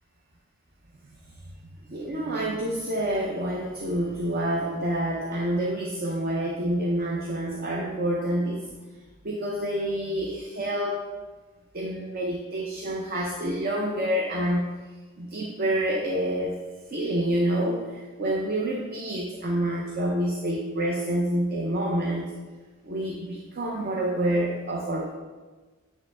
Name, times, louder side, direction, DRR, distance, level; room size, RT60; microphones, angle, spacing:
voice 1, 1.9-8.7 9.2-11.0 11.7-14.7 15.2-16.6 16.9-22.3 22.8-25.1, right 1 dB, 45° right, -1 dB, 0.7 m, -28 dB
8.9 x 3.2 x 3.4 m, 1.3 s
head